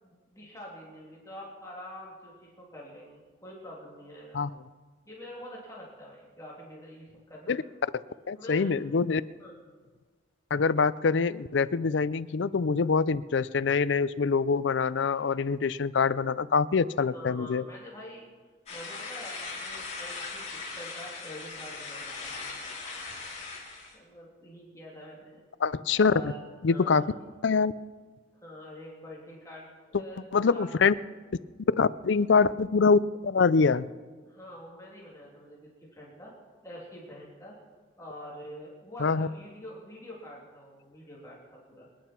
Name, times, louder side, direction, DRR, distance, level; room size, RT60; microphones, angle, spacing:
voice 1, 0.0-4.4 5.1-7.6 8.3-8.7 9.4-9.5 17.1-18.2 18.7-22.3 22.9-23.2 23.9-25.4 25.9-26.4 26.7-27.0 28.4-30.2 30.5-30.7 34.3-36.3 36.6-37.6 38.0-41.4 41.7-41.9, left 1 dB, 15° left, -4 dB, 3.1 m, -46 dB
voice 2, 8.3-9.2 10.5-17.6 25.6-26.3 26.6-27.0 27.4-27.7 30.3-30.9 31.8-33.9 39.0-39.3, left 5 dB, 65° left, 16 dB, 0.5 m, -24 dB
sound 1, 18.7-23.9, left 4 dB, 35° left, 4.2 m, -39 dB
25.5 x 10.0 x 4.5 m, 1.4 s
head